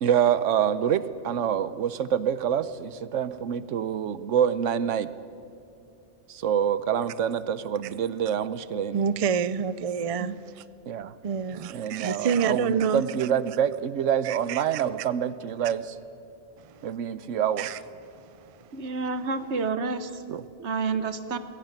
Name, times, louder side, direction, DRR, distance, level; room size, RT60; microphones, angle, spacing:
voice 1, 0.0-5.1 6.3-9.0 10.2-10.4 10.9-11.1 11.7-16.0 16.8-17.7 20.3-20.4, right 9 dB, 85° right, 15 dB, 1.1 m, -26 dB
voice 2, 8.9-10.6 11.2-13.3 14.2-14.8 16.6-16.9 17.6-17.8, right 6 dB, 45° right, 16 dB, 0.4 m, -28 dB
voice 3, 18.7-20.1 20.6-21.4, right 4 dB, 65° right, 11 dB, 1.4 m, -29 dB
20.5 x 17.0 x 9.1 m, 2.6 s
omnidirectional pair, 1.2 m